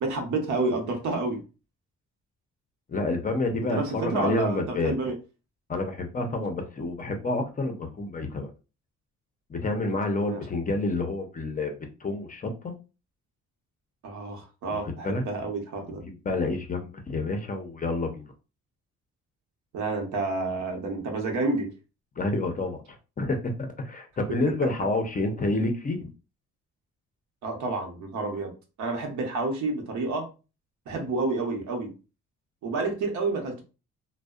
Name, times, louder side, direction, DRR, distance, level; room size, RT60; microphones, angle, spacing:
voice 1, 0.0-1.4 3.7-5.2 10.2-10.4 14.0-16.0 19.7-21.7 24.6-24.7 27.4-28.5 28.8-30.3 30.9-31.9 32.6-33.6, right 3 dB, 75° right, 3 dB, 0.8 m, -29 dB
voice 2, 2.9-4.9 5.7-8.5 9.5-11.7 12.0-12.7 15.0-15.2 15.9-18.3 22.2-26.1, left 2 dB, 25° left, 5 dB, 0.5 m, -29 dB
2.6 x 2.0 x 2.3 m, 0.31 s
cardioid pair, 90°, 30 cm